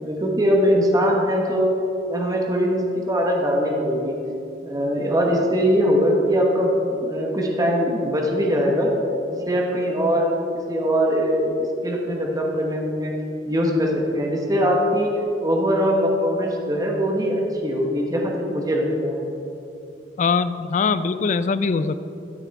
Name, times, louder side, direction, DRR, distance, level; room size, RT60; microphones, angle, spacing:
voice 1, 0.0-1.7 2.1-4.2 4.6-8.9 9.3-10.3 10.7-13.1 13.5-15.1 15.4-19.3, equal, 20° right, 0 dB, 1.0 m, -21 dB
voice 2, 20.2-22.0, left 5 dB, 45° left, 13 dB, 0.3 m, -22 dB
13.0 x 5.8 x 4.6 m, 2.9 s
head